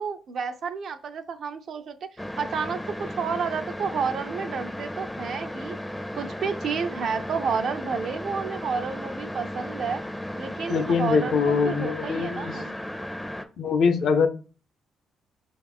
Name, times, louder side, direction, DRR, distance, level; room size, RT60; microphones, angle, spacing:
voice 1, 0.0-2.1 2.4-5.8 6.1-10.0 10.4-12.7, right 6 dB, 60° right, 8 dB, 0.4 m, -30 dB
sound 1, 2.2-13.5, left 1 dB, 5° left, 0.4 m, -35 dB
voice 2, 10.7-12.6 13.6-14.3, left 5 dB, 65° left, 7 dB, 0.4 m, -23 dB
5.0 x 2.3 x 3.4 m, 0.36 s
cardioid pair, 90°, 0 cm